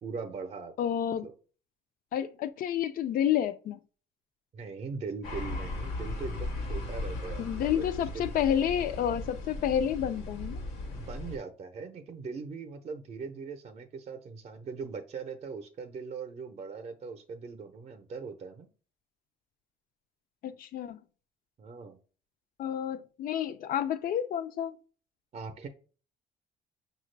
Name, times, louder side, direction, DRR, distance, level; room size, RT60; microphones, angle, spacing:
voice 1, 0.0-0.9 1.2-1.3 4.5-7.9 8.1-8.3 11.0-18.7 21.6-22.0 25.3-25.7, right 5 dB, 40° right, 0.6 m, -40 dB
voice 2, 0.8-1.3 2.1-3.8 7.4-10.6 20.4-21.0 22.6-24.7, left 10 dB, 60° left, 0.4 m, -30 dB
sound 1, 5.2-11.4, left 2 dB, 90° left, 1.1 m, -37 dB
5.6 x 2.3 x 3.2 m
cardioid pair, 110°, 17 cm